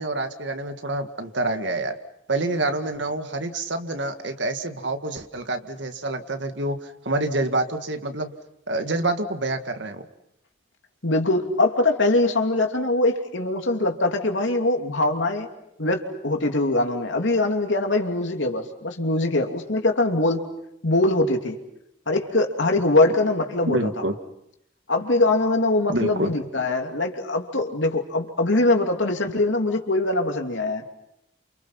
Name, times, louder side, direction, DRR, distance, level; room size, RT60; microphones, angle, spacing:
voice 1, 0.0-2.0 2.3-8.3 8.7-10.1 23.7-24.2 25.9-26.3, right 2 dB, 75° right, 7 dB, 2.0 m, -27 dB
voice 2, 11.0-15.5 15.8-20.4 20.8-21.6 22.1-23.9 24.9-30.8, left 2 dB, 80° left, 3 dB, 3.0 m, -22 dB
30.0 x 28.0 x 5.8 m, 0.78 s
head